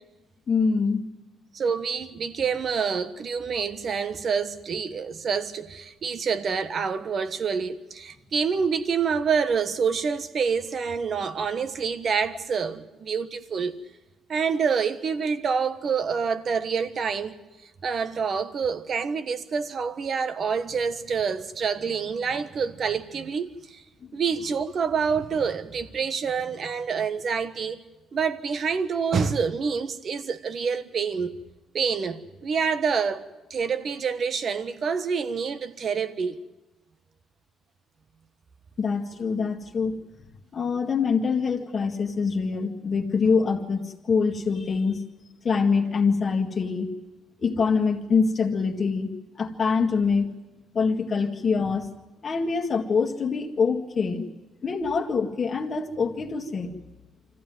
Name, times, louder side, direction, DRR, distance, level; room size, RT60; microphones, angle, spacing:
voice 1, 0.5-1.0 21.8-21.9 24.0-24.1 38.8-40.0 40.5-45.0 45.4-46.9 47.4-49.1 49.4-50.3 50.7-51.9 52.2-54.3 54.6-56.8, left 5 dB, 35° left, 1.9 m, -25 dB
voice 2, 1.5-13.8 14.3-17.4 17.8-23.8 24.1-27.8 28.1-31.4 31.7-33.2 33.5-36.4, right 6 dB, 50° right, 1.3 m, -27 dB
25.0 x 15.0 x 9.5 m
cardioid pair, 100°, 0 cm